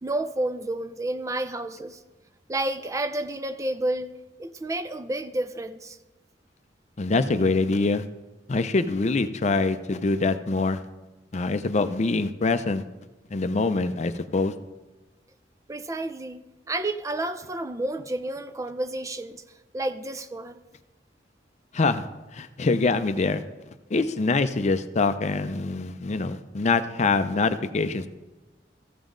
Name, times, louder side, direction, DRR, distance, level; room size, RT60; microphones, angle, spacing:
voice 1, 0.0-2.0 2.5-4.1 4.4-6.0 15.7-19.4 19.7-20.6, right 1 dB, 20° right, 10 dB, 0.4 m, -30 dB
voice 2, 7.0-8.0 8.5-10.8 11.3-12.8 13.3-14.5 21.7-22.0 22.3-23.4 23.9-28.1, left 3 dB, 40° left, 11 dB, 0.5 m, -24 dB
14.5 x 7.1 x 3.8 m, 1.2 s
head